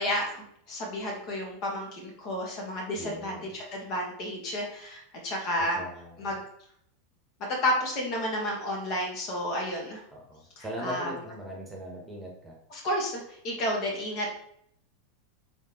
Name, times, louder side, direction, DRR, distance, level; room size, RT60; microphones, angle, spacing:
voice 1, 0.0-5.8 6.2-6.4 7.6-10.0 10.6-11.1 12.7-14.3, equal, 45° left, 0 dB, 1.4 m, -31 dB
voice 2, 2.9-3.5 5.6-6.3 10.1-12.6, equal, 15° right, -1 dB, 1.1 m, -40 dB
3.7 x 3.5 x 2.9 m, 0.68 s
figure-of-eight pair, 85°, 0 cm